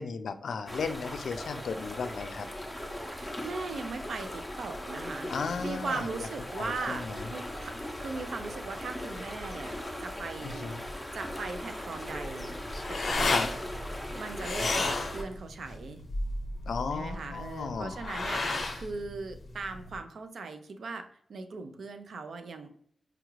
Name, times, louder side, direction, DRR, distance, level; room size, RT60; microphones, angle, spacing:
voice 1, 0.0-2.5 5.3-6.0 6.6-7.3 10.4-10.8 13.2-13.5 14.8-14.9 16.7-18.0, left 5 dB, 85° left, 9 dB, 0.3 m, -35 dB
sound 1, 0.7-15.2, left 1 dB, 5° left, 0.5 m, -39 dB
voice 2, 3.1-5.3 5.6-7.0 7.3-9.8 10.0-10.7 11.1-12.6 12.9-13.6 14.1-16.1 16.9-22.7, right 4 dB, 75° right, 7 dB, 0.4 m, -39 dB
sound 2, 12.1-20.0, left 2 dB, 55° left, 0.6 m, -33 dB
4.8 x 2.4 x 3.0 m, 0.64 s
wide cardioid pair, 140°, 0 cm